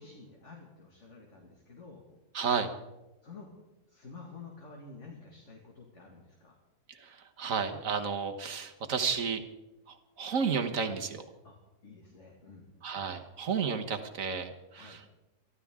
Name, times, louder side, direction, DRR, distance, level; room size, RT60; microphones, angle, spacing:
voice 1, 0.0-2.1 3.2-3.5 3.9-6.6 11.4-11.6 11.8-12.7 14.7-15.0, left 4 dB, 45° left, 0 dB, 2.3 m, -50 dB
voice 2, 2.3-2.7 6.9-9.4 9.9-11.2 12.8-15.0, right 6 dB, 55° right, 6 dB, 1.6 m, -32 dB
24.0 x 14.5 x 3.7 m, 1.0 s
omnidirectional pair, 1.7 m